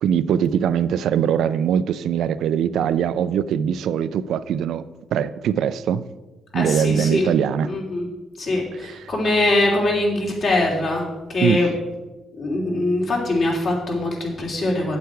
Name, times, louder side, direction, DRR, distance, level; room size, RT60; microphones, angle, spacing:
voice 1, 0.0-4.8 5.1-6.0 6.5-7.8 8.8-9.1 11.4-11.7, right 8 dB, 75° right, 14 dB, 0.4 m, -22 dB
voice 2, 6.5-7.3 7.7-8.1 8.4-11.0 11.3-11.7 12.4-15.0, left 2 dB, 55° left, -1 dB, 2.7 m, -22 dB
8.2 x 8.1 x 4.6 m, 1.1 s
cardioid pair, 90°, 0 cm